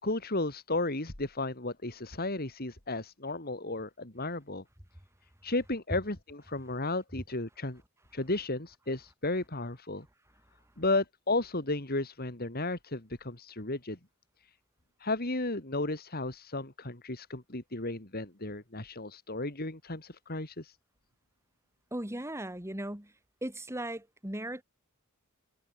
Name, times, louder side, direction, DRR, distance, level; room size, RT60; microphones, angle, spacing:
voice 1, 0.0-4.6 5.4-7.8 8.1-10.0 10.8-14.0 15.0-20.8, left 2 dB, 45° left, 3.4 m, -34 dB
voice 2, 21.9-23.1 23.4-24.6, right 1 dB, 15° right, 2.5 m, -37 dB
head